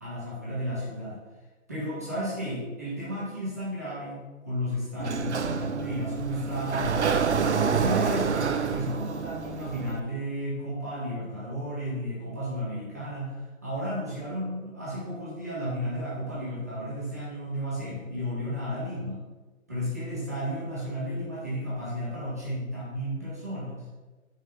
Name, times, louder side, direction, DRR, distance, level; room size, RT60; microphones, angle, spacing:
voice 1, 0.0-1.2 1.7-7.1 7.6-19.2 19.7-23.8, equal, 10° right, -9 dB, 0.7 m, -33 dB
Sliding door, 5.0-10.0, right 6 dB, 55° right, 0.5 m, -27 dB
5.6 x 3.5 x 5.2 m, 1.3 s
figure-of-eight pair, 150°, 42 cm